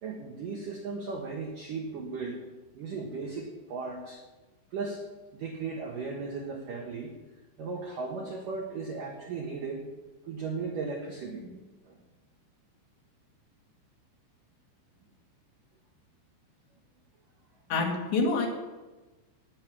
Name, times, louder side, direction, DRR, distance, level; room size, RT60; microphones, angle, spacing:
voice 1, 0.0-2.4 2.8-4.2 4.7-5.0 5.3-7.1 7.6-9.9 10.3-11.6 11.9-12.0, right 4 dB, 70° right, 0 dB, 2.1 m, -36 dB
voice 2, 17.7-18.5, left 3 dB, 60° left, 0 dB, 4.1 m, -26 dB
18.0 x 10.5 x 5.9 m, 1.2 s
omnidirectional pair, 5.9 m